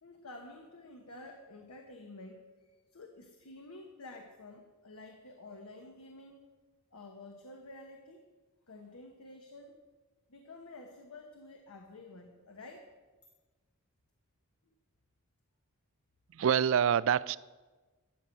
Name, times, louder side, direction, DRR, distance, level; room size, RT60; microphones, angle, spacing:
voice 1, 0.0-6.4 6.9-8.3 8.7-9.8 10.3-12.9 14.7-14.8, left 2 dB, 85° left, 3 dB, 1.1 m, -50 dB
voice 2, 16.3-17.4, right 8 dB, 60° right, 18 dB, 0.3 m, -26 dB
13.5 x 5.5 x 8.1 m, 1.3 s
head